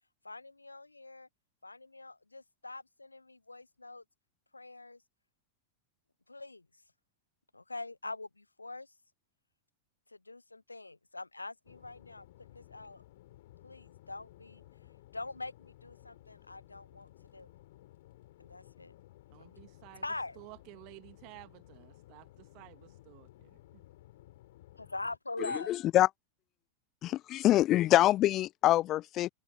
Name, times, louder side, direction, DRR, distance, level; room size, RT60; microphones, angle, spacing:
voice 1, 0.2-1.3 1.6-4.0 4.5-5.0 6.3-6.7 7.5-8.9 10.1-13.0 13.6-14.6 15.1-17.5 18.4-18.9 19.4-19.5 20.0-20.4 24.7-25.7, left 2 dB, 80° left, 0.8 m, -43 dB
sound 1, 11.6-25.2, left 15 dB, 55° left, 4.1 m, -57 dB
voice 2, 19.3-20.0 20.4-23.8, right 31 dB, 45° right, 2.1 m, -54 dB
voice 3, 25.4-26.1 27.0-29.3, left 14 dB, 35° left, 0.6 m, -25 dB
figure-of-eight pair, 90°, 0 cm